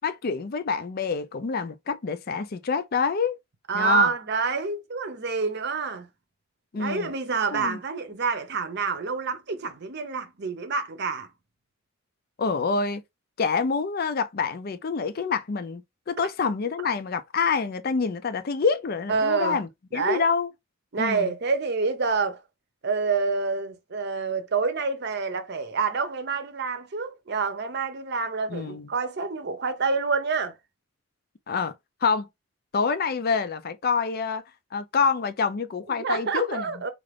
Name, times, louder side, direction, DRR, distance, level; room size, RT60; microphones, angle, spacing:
voice 1, 0.0-3.4 3.7-4.1 6.7-7.1 7.5-7.8 12.4-13.0 13.4-20.5 21.0-21.3 28.5-28.9 31.5-31.7 32.0-32.3 32.7-34.4 34.7-36.6, left 5 dB, 45° left, 0.4 m, -27 dB
voice 2, 3.7-6.1 6.7-11.3 19.1-19.6 19.9-20.3 20.9-22.4 22.8-30.6 35.9-36.9, right 4 dB, 50° right, 0.7 m, -27 dB
3.7 x 2.5 x 3.3 m
head